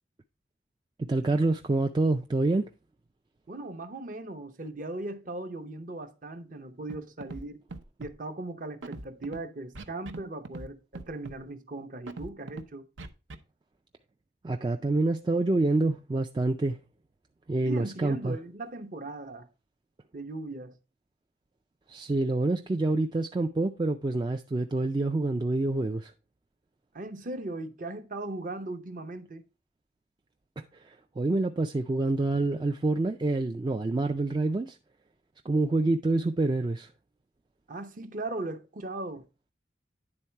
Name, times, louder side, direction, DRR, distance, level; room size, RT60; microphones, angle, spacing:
voice 1, 1.0-2.7 14.4-16.8 17.5-18.4 21.9-26.1 30.6-34.8 35.5-36.9, right 2 dB, 25° right, 0.3 m, -27 dB
voice 2, 3.5-7.6 8.0-12.9 17.6-19.5 20.1-20.8 26.9-29.4 37.7-39.3, right 2 dB, 45° right, 0.8 m, -38 dB
Scratching (performance technique), 6.9-7.0 7.2-7.4 7.7-8.1 8.8-9.4 9.7-10.2 10.4-10.7 10.9-11.4 12.1-12.6 13.0-13.4, right 2 dB, 80° right, 0.8 m, -40 dB
9.8 x 3.9 x 4.4 m
head